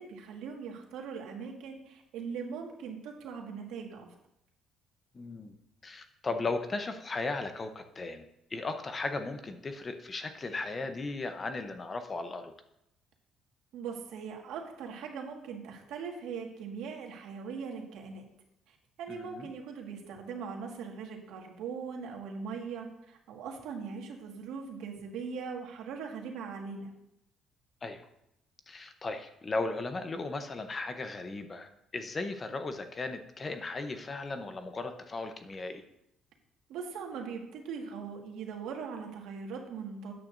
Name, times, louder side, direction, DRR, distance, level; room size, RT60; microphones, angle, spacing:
voice 1, 0.0-4.1 13.7-18.2 18.7-26.9 36.7-40.1, right 6 dB, 85° right, 2 dB, 1.7 m, -40 dB
voice 2, 5.1-5.5 5.8-12.5 19.1-19.5 27.8-28.1 28.7-35.8, left 3 dB, 25° left, 8 dB, 0.8 m, -36 dB
13.0 x 8.9 x 2.6 m, 0.80 s
cardioid pair, 135°, 0 cm